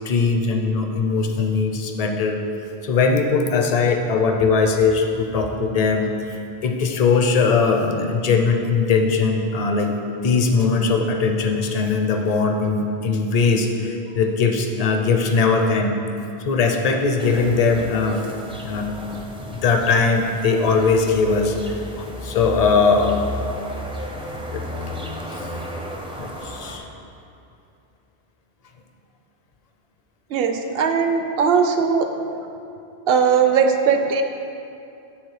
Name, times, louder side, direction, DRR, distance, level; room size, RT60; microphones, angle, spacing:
voice 1, 0.0-2.4 2.8-6.3 6.6-9.9 10.2-15.9 16.4-18.2 18.6-18.9 19.4-23.3 24.5-24.6 25.3-25.4 26.2-26.8, left 4 dB, 45° left, 4 dB, 0.6 m, -20 dB
sound 1, 17.2-26.8, equal, 5° right, 0.4 m, -33 dB
voice 2, 30.3-32.1 33.1-34.2, right 6 dB, 70° right, 6 dB, 0.8 m, -19 dB
9.4 x 3.9 x 4.9 m, 2.7 s
omnidirectional pair, 1.1 m